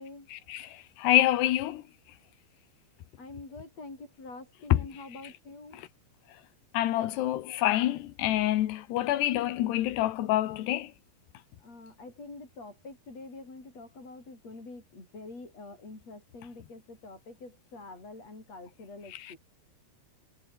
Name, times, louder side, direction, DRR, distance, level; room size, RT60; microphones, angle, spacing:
voice 1, 0.3-1.8 4.7-4.8 5.7-5.9 6.7-10.9 19.1-19.4, left 14 dB, 85° left, 3.5 m, -27 dB
voice 2, 3.2-5.8 11.6-19.4, left 3 dB, 40° left, 8.5 m, -46 dB
omnidirectional pair, 4.7 m